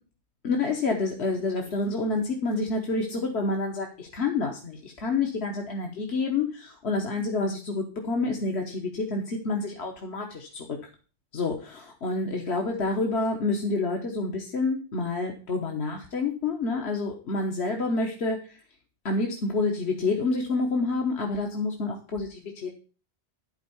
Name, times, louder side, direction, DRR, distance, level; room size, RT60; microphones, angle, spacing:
voice 1, 0.4-10.6 11.3-18.6 19.0-22.7, left 3 dB, 75° left, 2 dB, 1.4 m, -28 dB
11.5 x 4.5 x 7.0 m, 0.37 s
omnidirectional pair, 1.1 m